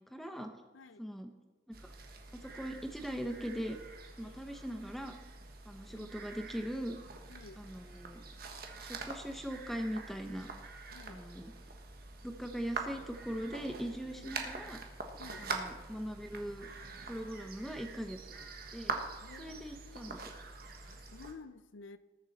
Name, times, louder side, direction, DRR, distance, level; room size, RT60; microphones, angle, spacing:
voice 1, 0.1-0.5 1.0-1.3 2.3-3.8 4.2-5.1 5.6-7.0 7.6-8.2 8.8-10.5 11.1-11.5 12.2-14.8 15.4-16.7 17.0-18.4 18.7-19.0 19.4-20.3, equal, ahead, 5 dB, 1.0 m, -40 dB
sound 1, 1.7-21.3, right 3 dB, 50° right, 1.4 m, -45 dB
voice 2, 7.3-7.6 10.9-11.2 14.1-14.3 15.2-15.5 19.2-20.2 20.8-22.0, left 4 dB, 85° left, 13 dB, 0.6 m, -52 dB
20.0 x 7.2 x 4.2 m, 1.3 s
head